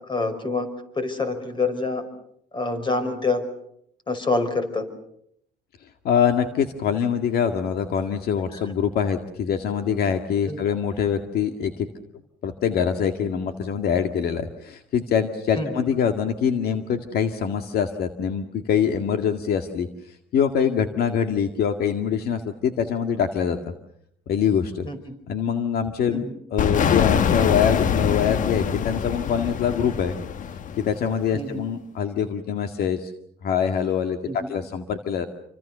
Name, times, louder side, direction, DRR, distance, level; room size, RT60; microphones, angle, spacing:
voice 1, 0.1-0.7 1.0-2.0 2.5-3.4 4.1-4.9 10.5-10.6 15.6-15.9 24.9-25.0 26.1-26.3 31.3-31.6 34.3-34.5, left 3 dB, 30° left, 9 dB, 5.5 m, -26 dB
voice 2, 6.0-11.9 12.4-19.9 20.3-23.6 24.3-24.9 25.3-26.3 26.5-30.1 30.8-33.1 33.4-35.3, left 7 dB, 65° left, 6 dB, 2.0 m, -24 dB
sound 1, 26.6-31.2, left 7 dB, 50° left, 1.1 m, -24 dB
28.5 x 25.0 x 6.8 m, 0.73 s
cardioid pair, 110°, 17 cm